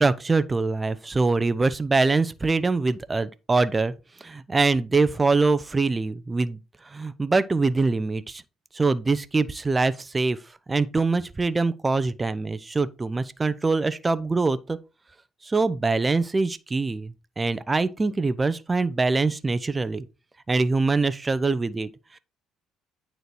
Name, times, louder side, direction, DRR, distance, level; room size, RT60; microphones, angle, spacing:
voice 1, 0.0-3.9 4.2-6.6 6.8-8.4 8.7-10.4 10.7-14.8 15.4-20.0 20.5-22.2, right 3 dB, 25° right, 0.8 m, -24 dB
9.3 x 4.6 x 4.4 m
hypercardioid pair, 50°, 0 cm